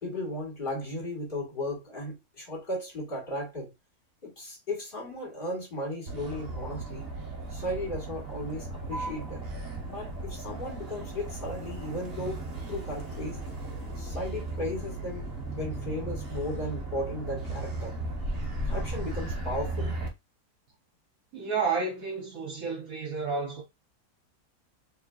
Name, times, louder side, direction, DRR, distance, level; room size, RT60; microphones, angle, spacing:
voice 1, 0.0-3.7 4.2-7.1 7.5-9.5 9.8-12.4 12.7-13.4 14.0-17.9 18.6-20.0, left 1 dB, 30° left, 2.1 m, -35 dB
Motor vehicle (road), 6.1-20.1, right 2 dB, 40° right, 1.2 m, -36 dB
voice 2, 21.3-23.6, right 5 dB, 60° right, 1.3 m, -31 dB
4.3 x 3.1 x 2.4 m
omnidirectional pair, 1.8 m